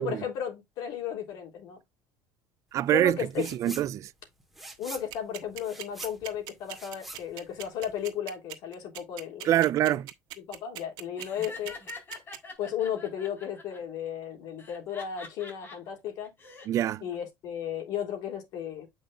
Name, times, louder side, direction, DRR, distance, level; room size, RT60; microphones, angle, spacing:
voice 1, 0.0-1.8 2.9-3.8 4.8-9.5 10.4-11.8 12.6-16.3 17.0-18.9, left 9 dB, 60° left, 3.4 m, -34 dB
voice 2, 2.7-4.1 9.4-10.1 16.7-17.0, right 12 dB, 45° right, 0.4 m, -25 dB
sound 1, 3.3-3.9 4.2-8.1, right 1 dB, ahead, 1.8 m, -45 dB
sound 2, 4.9-12.4, right 14 dB, 70° right, 1.4 m, -40 dB
Laughter, 11.2-13.8 14.6-15.8 16.2-16.7, left 3 dB, 30° left, 4.5 m, -44 dB
8.6 x 5.5 x 2.4 m
cardioid pair, 140°, 7 cm